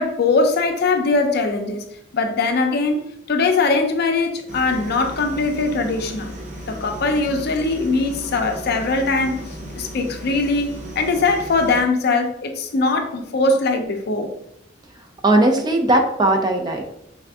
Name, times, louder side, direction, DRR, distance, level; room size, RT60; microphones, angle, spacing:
voice 1, 0.0-1.8 2.1-6.3 6.7-9.4 9.8-14.3, left 3 dB, 55° left, 5 dB, 0.5 m, -21 dB
sound 1, 4.5-11.8, equal, 40° right, 0.8 m, -35 dB
voice 2, 15.2-16.9, right 1 dB, 20° right, 4 dB, 0.4 m, -18 dB
3.5 x 2.5 x 3.4 m, 0.78 s
head